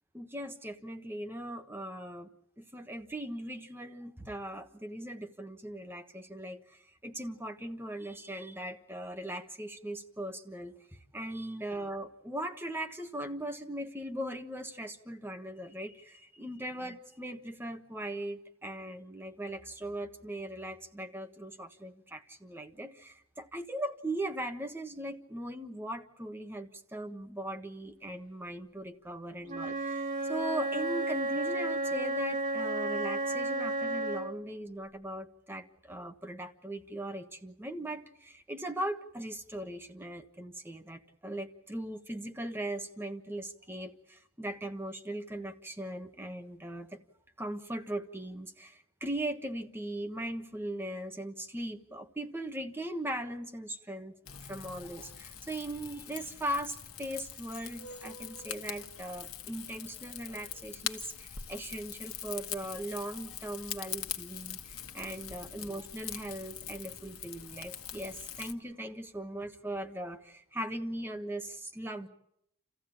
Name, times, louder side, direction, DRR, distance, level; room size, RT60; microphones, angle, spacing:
voice 1, 0.1-2.3 2.6-47.0 47.4-72.1, right 1 dB, 10° right, 6 dB, 1.3 m, -39 dB
Wind instrument woodwind instrument, 29.4-34.4, right 2 dB, 35° right, 3.1 m, -32 dB
Rain / Fire, 54.3-68.5, left 9 dB, 70° left, 1.4 m, -43 dB
29.0 x 15.0 x 8.9 m, 0.78 s
head